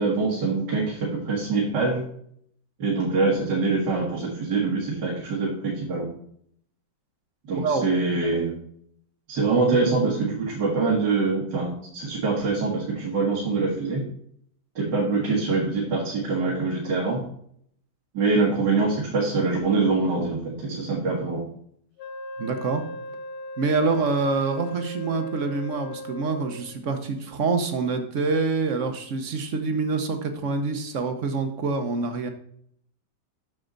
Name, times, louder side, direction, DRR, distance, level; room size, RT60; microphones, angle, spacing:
voice 1, 0.0-2.0 2.8-6.1 7.5-8.5 9.3-14.0 14.8-17.2 18.1-21.4, right 3 dB, 75° right, -3 dB, 2.1 m, -24 dB
voice 2, 7.5-7.8 22.4-22.8 23.6-32.3, right 4 dB, 50° right, 7 dB, 1.1 m, -26 dB
Wind instrument woodwind instrument, 22.0-26.7, left 1 dB, 85° left, 1.4 m, -38 dB
7.9 x 6.5 x 3.9 m, 0.66 s
omnidirectional pair, 1.9 m